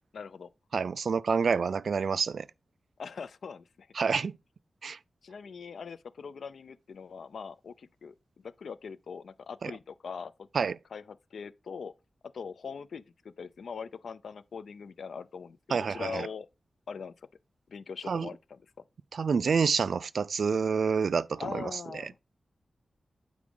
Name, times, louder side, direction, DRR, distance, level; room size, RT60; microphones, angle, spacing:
voice 1, 0.1-0.5 3.0-3.9 5.2-10.5 10.9-11.9 12.3-16.5 16.9-17.1 17.7-18.6 21.4-22.2, left 6 dB, 85° left, 0.4 m, -42 dB
voice 2, 0.7-2.5 3.9-4.4 4.8-5.0 9.6-9.7 10.5-10.8 15.7-16.3 18.1-18.3 19.1-22.2, right 5 dB, 70° right, 0.3 m, -28 dB
8.5 x 4.9 x 3.7 m
wide cardioid pair, 150°, 0 cm